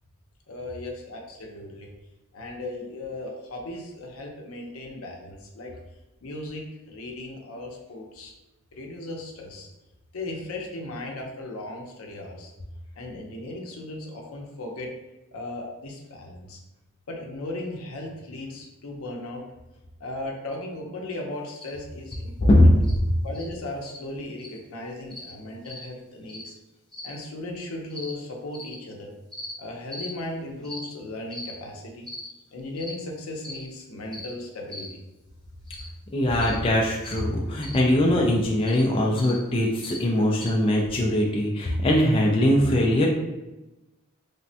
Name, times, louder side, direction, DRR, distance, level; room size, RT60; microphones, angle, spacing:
voice 1, 0.5-1.9 2.3-5.7 6.2-8.3 8.7-9.7 10.1-12.5 13.0-14.9 15.3-16.6 17.1-19.4 20.0-22.7 23.2-26.5 27.0-29.1 29.6-32.1 32.5-34.9, left 2 dB, 80° left, 1 dB, 0.6 m, -36 dB
sound 1, 21.5-21.7 22.1-22.2 22.8-22.9 23.3-23.5 23.8-24.0 24.4-24.6 25.1-25.3 25.6-25.8 26.3-26.5 26.9-27.1 27.9-28.1 28.5-28.7 29.3-29.5 29.9-30.1 30.6-30.8 31.3-31.5 32.0-32.3 32.8-32.9 33.4-33.6 34.1-34.3 34.7-34.9 35.7-35.9 36.4-36.6 37.0-37.2 37.6-37.8 38.6-38.8 39.2-39.4 39.8-40.0 40.4-40.5, left 2 dB, 5° left, 0.7 m, -39 dB
voice 2, 22.5-22.9 36.1-43.1, left 1 dB, 25° left, -2 dB, 0.3 m, -21 dB
3.4 x 2.1 x 2.7 m, 1.0 s
head